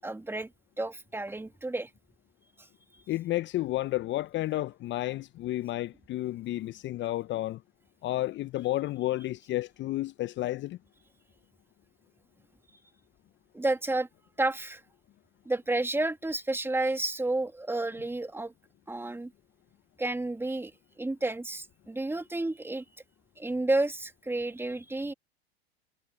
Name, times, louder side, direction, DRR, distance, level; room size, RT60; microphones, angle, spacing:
voice 1, 0.0-0.5 0.8-1.9 13.5-14.1 14.4-14.8 15.5-18.5 18.9-19.3 20.0-20.7 21.0-22.8 23.4-25.1, right 2 dB, 5° right, 2.3 m, -31 dB
voice 2, 3.1-7.6 8.0-10.8, left 16 dB, 35° left, 1.0 m, -31 dB
hypercardioid pair, 85°, 32 cm